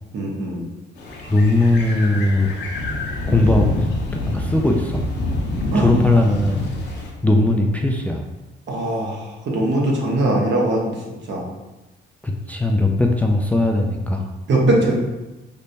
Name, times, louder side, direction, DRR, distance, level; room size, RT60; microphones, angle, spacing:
voice 1, 0.1-0.7 5.7-5.9 8.7-10.9 11.3-11.4 14.5-15.0, right 1 dB, 65° right, -2 dB, 0.9 m, -20 dB
sound 1, 1.0-7.1, left 1 dB, 60° left, 0.7 m, -26 dB
voice 2, 1.3-2.5 3.3-3.9 4.1-5.0 5.7-6.7 7.2-8.2 12.2-14.2, left 2 dB, 5° left, 1 dB, 0.3 m, -19 dB
3.3 x 2.1 x 3.9 m, 1.1 s
cardioid pair, 90°, 20 cm